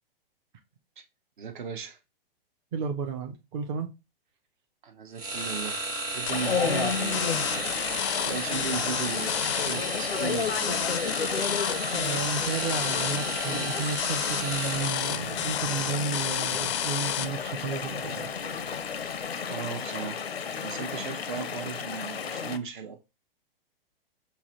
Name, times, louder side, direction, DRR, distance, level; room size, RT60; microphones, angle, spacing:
voice 1, 1.4-2.0 4.8-5.8 6.1-7.4 8.2-10.8 19.5-20.3 20.6-23.0, right 6 dB, 55° right, 0.9 m, -36 dB
voice 2, 2.7-3.9 6.6-6.9 11.9-18.3, right 5 dB, 30° right, 0.5 m, -33 dB
sound 1, 5.1-15.3, right 2 dB, 80° right, 1.4 m, -34 dB
Chatter / Stream, 6.3-22.6, left 6 dB, 85° left, 0.6 m, -32 dB
sound 2, 6.3-17.3, left 10 dB, 30° left, 0.4 m, -32 dB
5.9 x 2.1 x 2.9 m
figure-of-eight pair, 115°, 30 cm